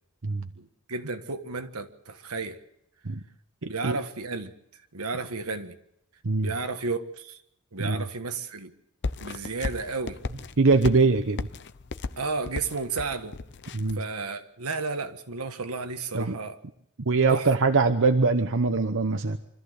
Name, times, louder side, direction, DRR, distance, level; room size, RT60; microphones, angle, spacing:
voice 1, 0.6-2.6 3.6-4.5 4.9-5.8 6.4-7.4 7.7-8.7 9.2-10.2 12.2-13.4 13.9-16.6 17.3-17.5, right 4 dB, 80° right, 1.5 m, -33 dB
voice 2, 3.6-4.0 6.2-6.5 7.8-8.0 10.6-11.5 13.7-14.0 16.1-16.3 17.1-19.4, right 3 dB, 60° right, 1.0 m, -22 dB
sound 1, 9.0-14.0, left 3 dB, 55° left, 0.8 m, -35 dB
25.0 x 14.0 x 8.0 m
head